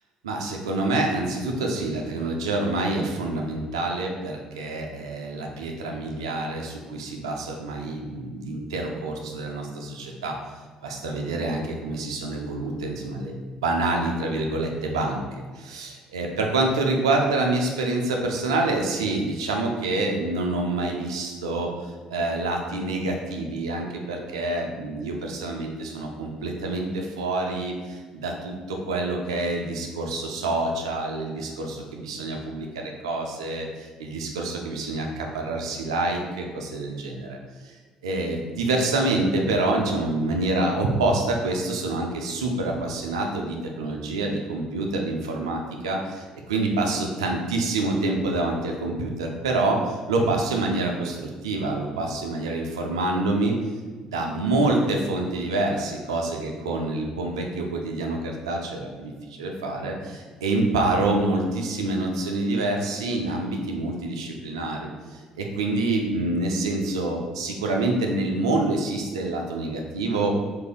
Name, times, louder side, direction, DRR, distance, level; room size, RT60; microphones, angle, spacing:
voice 1, 0.2-10.4 10.8-15.2 15.5-37.4 37.6-37.8 38.0-53.5 54.0-70.3, right 2 dB, 85° right, 2 dB, 0.4 m, -27 dB
3.3 x 2.5 x 3.5 m, 1.4 s
hypercardioid pair, 55°, 3 cm